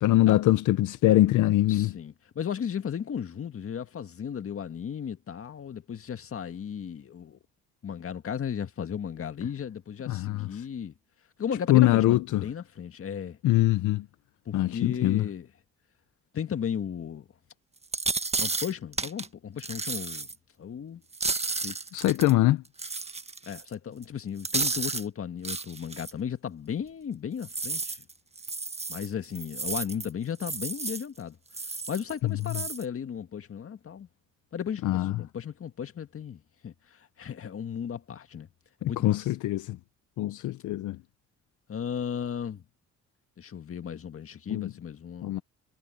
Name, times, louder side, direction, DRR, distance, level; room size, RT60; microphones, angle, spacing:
voice 1, 0.0-2.0 10.1-10.6 11.7-12.5 13.4-14.1 14.5-15.2 21.9-22.6 34.8-35.2 38.8-39.8 40.2-41.0 44.5-44.7 45.2-45.4, left 15 dB, 80° left, 0.8 m, -23 dB
voice 2, 1.7-7.4 7.8-10.9 11.4-13.4 14.5-15.5 16.3-17.3 18.4-20.3 20.6-21.0 21.6-21.8 23.5-28.0 28.9-31.4 31.9-34.1 34.5-38.5 38.8-39.2 41.7-42.6 43.4-45.3, left 8 dB, 45° left, 1.8 m, -35 dB
sound 1, 17.8-19.3 19.6-20.3 21.1-22.3 22.8-23.7 24.0-24.1 24.4-25.0 25.4-26.1 27.4-30.1 30.3-31.0 31.5-32.1 32.4-32.8, right 3 dB, 20° right, 1.5 m, -32 dB
cardioid pair, 90°, 30 cm